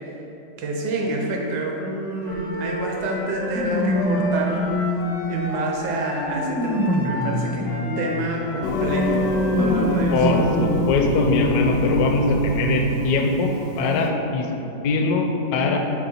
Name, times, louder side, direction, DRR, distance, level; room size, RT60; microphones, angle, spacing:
voice 1, 0.6-4.6 5.3-9.2 9.6-10.1, right 2 dB, 75° right, -1 dB, 1.5 m, -27 dB
Wind instrument woodwind instrument, 2.2-10.8, left 1 dB, 50° left, 0.7 m, -33 dB
sound 1, 2.3-2.4 3.5-5.6 6.1-8.2 9.4-10.8 11.5-11.6 12.7-12.8, equal, 15° left, 0.4 m, -25 dB
Singing, 8.6-14.1, left 1 dB, 90° left, 1.3 m, -24 dB
voice 2, 10.1-14.5 14.8-15.8, left 3 dB, 70° left, 3 dB, 1.1 m, -22 dB
6.6 x 4.2 x 4.2 m, 3.0 s
omnidirectional pair, 1.9 m